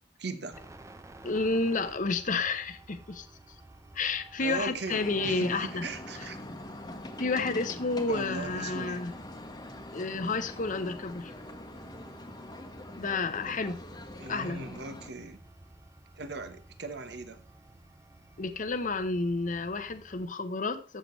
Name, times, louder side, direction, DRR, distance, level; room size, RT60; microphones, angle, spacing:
voice 1, 0.2-0.6 4.4-6.4 8.1-9.0 14.2-15.4 16.1-17.4, right 3 dB, 65° right, 10 dB, 1.1 m, -39 dB
sound 1, 0.5-20.3, right 2 dB, 15° right, 0.7 m, -53 dB
voice 2, 1.2-3.3 3.9-5.8 7.2-9.1 9.9-11.3 13.0-13.8 14.3-14.6 18.4-21.0, left 3 dB, 45° left, 10 dB, 0.8 m, -30 dB
sound 2, 4.9-15.1, left 1 dB, 20° left, 1.1 m, -43 dB
14.0 x 6.8 x 3.1 m, 0.37 s
head